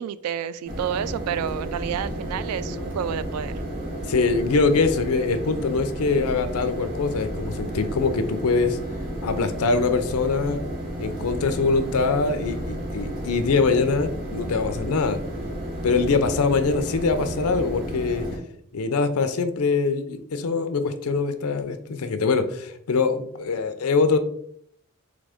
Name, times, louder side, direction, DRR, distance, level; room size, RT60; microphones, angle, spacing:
voice 1, 0.0-3.5, right 8 dB, 85° right, 16 dB, 0.3 m, -29 dB
sound 1, 0.7-18.4, equal, 40° right, 1.3 m, -32 dB
voice 2, 4.1-8.8 9.2-10.6 11.0-15.2 15.8-18.3 18.7-24.2, left 4 dB, 80° left, 9 dB, 0.5 m, -23 dB
3.8 x 3.5 x 3.4 m, 0.68 s
head